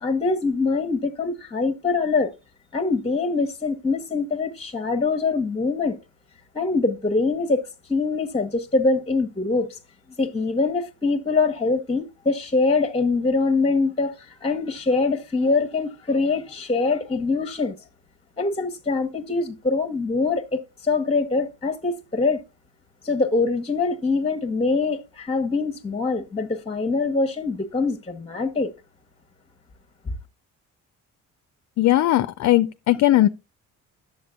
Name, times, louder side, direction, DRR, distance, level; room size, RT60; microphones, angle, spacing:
voice 1, 0.0-2.3 2.7-6.0 6.5-7.6 7.9-9.7 10.2-14.1 14.4-17.7 18.4-22.4 23.0-28.7, left 3 dB, 20° left, 1.0 m, -23 dB
voice 2, 31.8-33.3, left 14 dB, 60° left, 0.5 m, -18 dB
10.0 x 7.5 x 2.4 m
cardioid pair, 90°, 30 cm